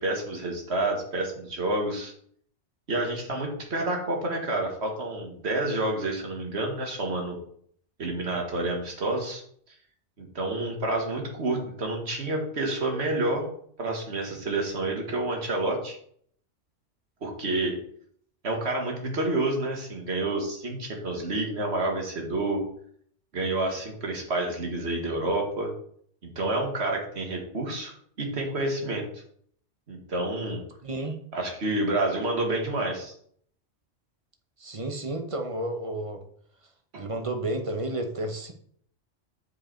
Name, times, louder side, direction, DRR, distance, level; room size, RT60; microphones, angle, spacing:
voice 1, 0.0-2.1 2.9-7.4 8.0-9.4 10.2-13.5 13.8-16.0 17.2-17.8 18.4-22.6 23.3-25.7 26.2-29.1 29.9-30.6 31.3-33.1 36.9-37.0, right 2 dB, 60° right, 1 dB, 1.9 m, -29 dB
voice 2, 30.8-31.2 34.6-36.2 37.0-38.5, right 1 dB, 30° right, 5 dB, 0.9 m, -31 dB
7.7 x 5.0 x 4.4 m, 0.63 s
omnidirectional pair, 1.2 m